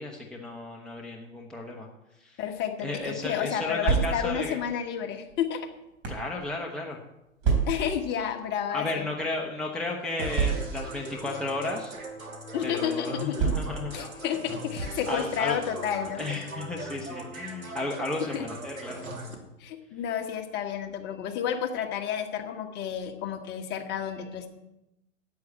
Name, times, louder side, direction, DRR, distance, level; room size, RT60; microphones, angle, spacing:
voice 1, 0.0-1.9 2.2-2.4 2.8-4.6 6.1-7.0 8.7-11.9 12.6-13.9 15.1-15.6 16.2-19.0, left 2 dB, ahead, -1 dB, 1.0 m, -33 dB
voice 2, 2.4-5.7 7.7-9.1 12.5-13.6 13.9-16.3 18.3-18.4 19.6-24.5, left 8 dB, 25° left, 5 dB, 1.5 m, -31 dB
sound 1, 3.6-4.5 5.3-6.3 7.4-8.0 8.9-9.1 9.3-9.4 10.3-11.0 11.9-12.1 13.3-14.0, right 6 dB, 25° right, 4.0 m, -27 dB
sound 2, 10.2-19.3, right 2 dB, 80° right, 2.9 m, -39 dB
9.5 x 8.6 x 8.1 m, 0.92 s
figure-of-eight pair, 115°, 41 cm